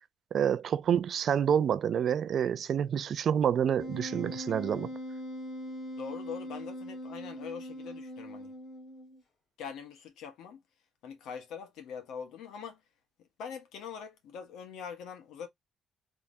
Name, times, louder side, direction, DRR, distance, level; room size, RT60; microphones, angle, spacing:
voice 1, 0.3-4.9, right 8 dB, 50° right, 0.4 m, -28 dB
Wind instrument woodwind instrument, 3.8-9.2, equal, 50° left, 2.2 m, -41 dB
voice 2, 6.0-8.5 9.6-10.6 11.0-12.8 13.4-15.5, left 7 dB, 85° left, 1.5 m, -43 dB
3.5 x 3.2 x 2.7 m
cardioid pair, 135°, 0 cm